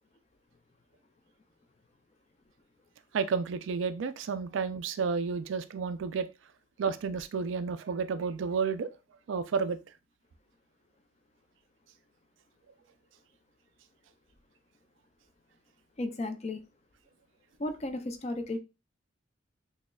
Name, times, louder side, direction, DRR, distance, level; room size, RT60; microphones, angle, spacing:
voice 1, 3.1-6.3 6.8-8.9 9.3-9.8, right 5 dB, 75° right, 0.4 m, -31 dB
voice 2, 16.0-16.6 17.6-18.6, left 2 dB, 35° left, 0.4 m, -34 dB
6.2 x 2.1 x 2.3 m
head